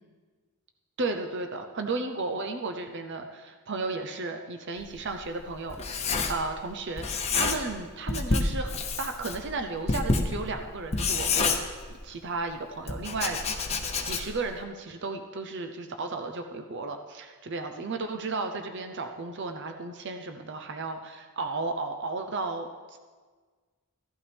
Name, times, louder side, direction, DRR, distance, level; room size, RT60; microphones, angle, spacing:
voice 1, 1.0-11.6 12.0-13.8 14.0-23.0, right 3 dB, 55° right, 5 dB, 0.7 m, -34 dB
Writing, 4.8-6.7 7.0-7.8 8.1-12.2 12.9-14.5, left 4 dB, 30° left, 0.9 m, -29 dB
15.5 x 11.5 x 3.5 m, 1.5 s
head